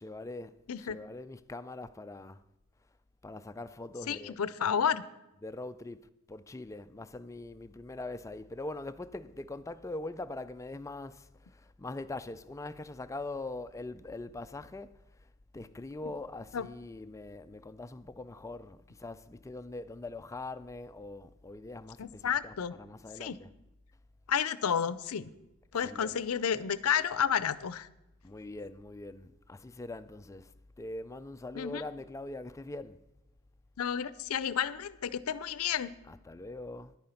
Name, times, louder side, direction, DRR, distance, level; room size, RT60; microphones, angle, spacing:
voice 1, 0.0-2.4 3.2-4.4 5.4-15.0 15.5-23.5 25.7-26.3 28.2-33.0 36.0-37.0, left 2 dB, 15° left, 0.4 m, -42 dB
voice 2, 4.1-5.0 16.5-16.7 22.0-22.7 23.2-23.4 24.3-25.3 25.7-27.9 31.6-31.8 33.8-35.9, left 8 dB, 70° left, 0.5 m, -31 dB
10.5 x 9.0 x 5.7 m
head